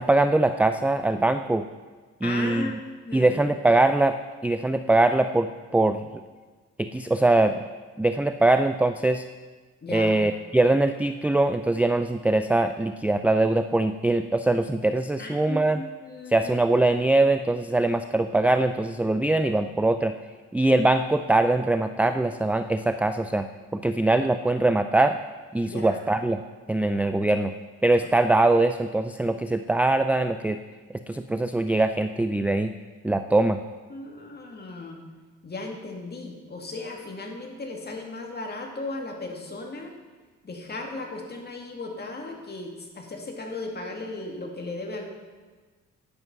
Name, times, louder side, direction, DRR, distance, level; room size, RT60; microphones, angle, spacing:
voice 1, 0.0-1.7 2.2-2.7 3.1-4.1 4.4-6.1 6.8-7.6 8.0-9.2 9.9-15.8 16.3-20.1 20.5-23.5 23.7-25.2 25.5-26.4 26.7-27.5 27.8-30.6 31.1-32.7 33.0-33.6, right 2 dB, 5° right, 9 dB, 0.4 m, -22 dB
voice 2, 2.2-2.8 3.0-3.4 9.8-10.2 15.2-16.6 25.6-26.0 33.9-35.0 35.4-39.9 40.4-45.0, left 2 dB, 35° left, 2 dB, 2.3 m, -36 dB
11.0 x 8.2 x 6.0 m, 1.4 s
cardioid pair, 90°, 30 cm